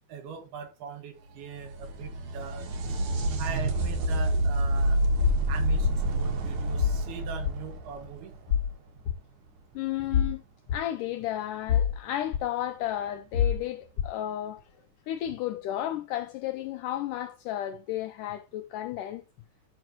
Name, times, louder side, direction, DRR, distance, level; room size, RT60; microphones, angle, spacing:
voice 1, 0.1-2.7 3.4-5.0 5.5-8.3, right 8 dB, 85° right, 3.4 m, -40 dB
sound 1, 1.3-8.9 12.3-12.4 13.4-13.5, right 1 dB, 60° right, 2.6 m, -28 dB
sound 2, 5.2-5.4 5.8-6.0 6.8-7.0 7.5-7.6 8.5-8.7 9.1-9.2 10.1-10.3 10.7-10.8 11.7-12.0 12.3-12.4 13.3-13.6 14.0-14.1, left 8 dB, 65° left, 1.7 m, -25 dB
voice 2, 9.8-10.4 10.7-14.6 15.1-19.2, left 12 dB, 85° left, 1.8 m, -33 dB
13.0 x 6.1 x 3.0 m
omnidirectional pair, 4.3 m